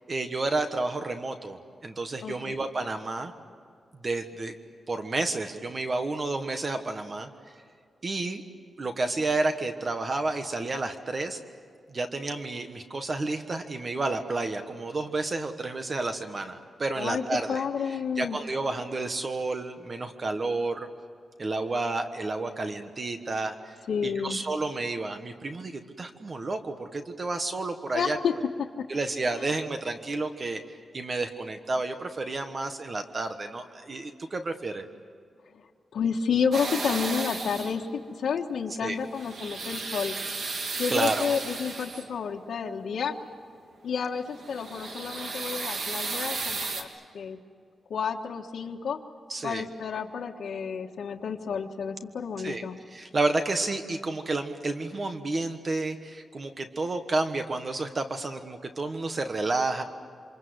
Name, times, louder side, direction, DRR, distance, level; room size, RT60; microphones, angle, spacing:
voice 1, 0.1-3.3 4.0-4.5 4.9-7.3 8.0-8.4 8.8-11.4 11.9-17.6 18.2-20.9 21.4-23.7 24.0-28.2 28.9-34.8 38.8-39.0 40.9-41.3 49.3-49.6 52.4-52.6 52.9-59.8, right 2 dB, 30° right, 7 dB, 1.3 m, -30 dB
voice 2, 2.2-2.6 17.0-17.2 17.5-18.4 23.9-24.4 27.9-28.3 29.3-29.5 35.5-35.7 35.9-40.1 40.8-43.1 43.8-46.9 47.1-47.4 47.9-49.0 49.4-52.8, left 6 dB, 90° left, -1 dB, 1.4 m, -30 dB
sound 1, 36.5-37.9 39.0-42.2 44.2-46.8, right 3 dB, 65° right, 3.0 m, -34 dB
28.0 x 26.0 x 8.0 m, 2.2 s
wide cardioid pair, 170°, 0 cm